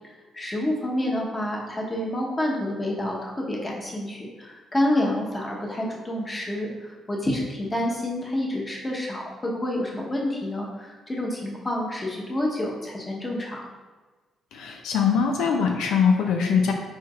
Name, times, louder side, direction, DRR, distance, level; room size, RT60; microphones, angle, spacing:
voice 1, 0.3-13.7, left 1 dB, 20° left, -2 dB, 1.0 m, -28 dB
voice 2, 14.5-16.7, left 6 dB, 85° left, 2 dB, 0.5 m, -22 dB
4.5 x 4.3 x 2.4 m, 1.3 s
cardioid pair, 90°, 0 cm